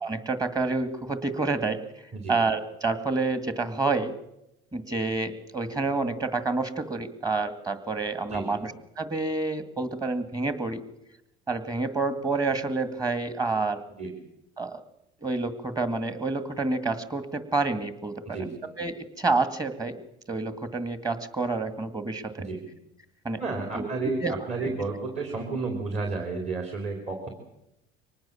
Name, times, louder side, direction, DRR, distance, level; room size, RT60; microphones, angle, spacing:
voice 1, 0.0-1.8 2.3-4.1 4.7-10.8 11.5-13.8 14.6-14.8 15.2-18.4 18.8-20.0 20.3-22.4 23.2-23.4 23.7-24.3 24.6-24.7, right 3 dB, 20° right, 10 dB, 2.2 m, -28 dB
voice 2, 18.2-18.6 22.4-22.6 23.4-27.3, right 3 dB, 35° right, 1 dB, 4.2 m, -31 dB
24.0 x 19.0 x 7.2 m, 0.87 s
supercardioid pair, 115°, 19 cm